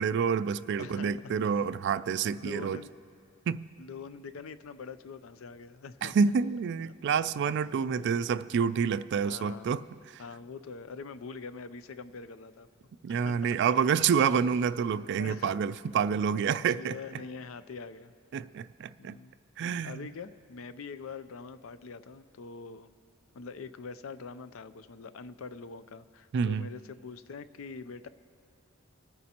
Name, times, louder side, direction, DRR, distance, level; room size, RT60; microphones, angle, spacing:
voice 1, 0.0-2.8 3.5-3.6 6.0-9.8 13.0-17.0 18.3-19.2 19.6-20.1 26.3-26.7, right 6 dB, 60° right, 16 dB, 0.3 m, -28 dB
voice 2, 0.8-1.3 2.3-2.9 3.8-6.3 6.9-7.0 7.8-8.2 9.2-9.7 10.2-12.7 13.1-13.6 15.2-15.5 16.8-18.1 19.0-19.3 19.8-22.9 23.3-28.1, left 4 dB, 85° left, 13 dB, 0.5 m, -44 dB
25.0 x 9.4 x 2.9 m, 2.7 s
head